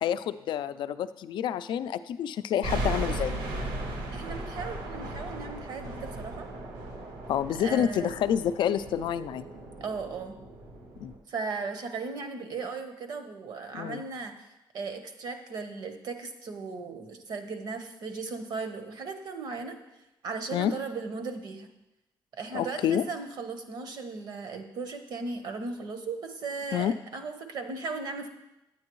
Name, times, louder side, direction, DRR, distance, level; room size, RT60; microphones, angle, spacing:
voice 1, 0.0-3.4 7.3-9.5 11.0-11.1 13.7-14.0 20.5-20.7 22.5-23.0 26.7-26.9, left 9 dB, 65° left, 13 dB, 0.4 m, -28 dB
sound 1, 2.6-11.2, right 1 dB, 90° right, 1.6 m, -36 dB
voice 2, 4.1-6.5 7.6-8.2 9.8-10.3 11.3-14.3 14.7-19.8 20.2-21.7 22.4-28.3, right 4 dB, 55° right, 6 dB, 0.9 m, -37 dB
9.6 x 8.8 x 3.1 m, 0.94 s
cardioid pair, 160°, 9 cm